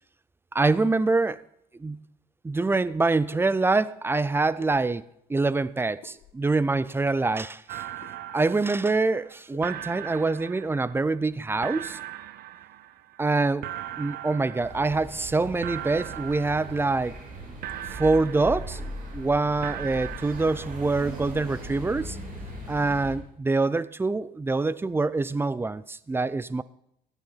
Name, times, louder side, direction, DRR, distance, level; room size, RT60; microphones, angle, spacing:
voice 1, 0.5-1.4 1.8-2.0 2.4-5.0 5.3-7.8 8.3-12.0 13.2-13.7 14.0-17.2 17.9-18.8 19.1-22.2 22.7-26.6, right 3 dB, 15° right, 18 dB, 0.4 m, -25 dB
sound 1, 2.9-3.0 3.3-3.5 4.6-5.2 6.0-6.5 8.0-8.1 8.4-8.5 8.8-9.1 9.5-9.9, left 8 dB, 70° left, 1.9 m, -51 dB
sound 2, 7.7-9.3 9.6-11.3 11.6-13.3 13.6-15.3 15.6-17.3 17.6-19.3 19.6-21.3, right 12 dB, 70° right, 0.6 m, -40 dB
sound 3, 14.6-23.1, equal, 50° right, 5.1 m, -39 dB
14.5 x 9.1 x 5.7 m, 0.75 s
cardioid pair, 110°, 17 cm